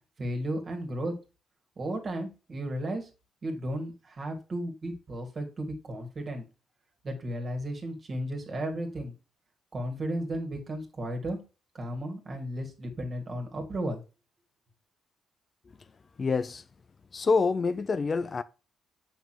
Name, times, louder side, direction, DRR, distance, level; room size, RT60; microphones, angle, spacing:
voice 1, 0.2-1.1 1.8-3.1 3.4-6.4 7.0-9.1 9.7-11.4 11.7-14.0, right 1 dB, 40° right, 2.0 m, -34 dB
voice 2, 16.2-16.6 17.1-18.4, left 4 dB, 35° left, 0.4 m, -26 dB
7.2 x 5.5 x 2.9 m
cardioid pair, 90°, 0 cm